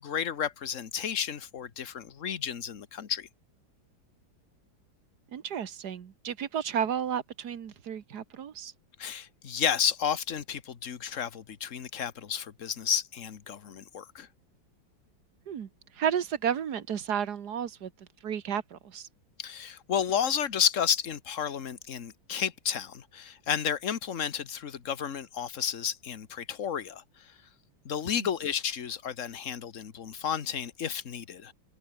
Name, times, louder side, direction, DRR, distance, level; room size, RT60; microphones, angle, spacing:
voice 1, 0.0-3.3 9.0-14.3 19.4-27.3 27.8-31.5, left 8 dB, 40° left, 1.5 m, -32 dB
voice 2, 5.3-8.7 15.5-15.7 16.0-17.9 18.2-19.1, right 8 dB, 55° right, 1.8 m, -32 dB
omnidirectional pair, 2.2 m